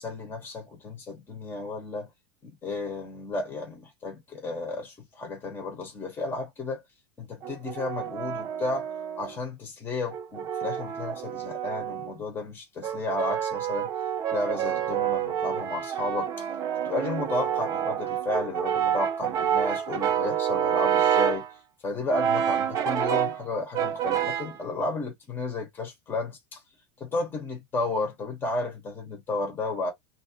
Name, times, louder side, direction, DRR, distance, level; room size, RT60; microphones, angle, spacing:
voice 1, 0.0-2.1 2.4-6.8 7.2-8.9 9.2-13.9 14.3-16.5 16.8-21.4 21.8-26.6 27.0-29.9, left 2 dB, 15° left, 1.2 m, -33 dB
Brass instrument, 7.4-9.4 10.1-12.2 12.8-21.5 22.1-23.4 23.7-24.6, right 9 dB, 25° right, 0.6 m, -28 dB
3.0 x 2.8 x 2.9 m
supercardioid pair, 170°, 15 cm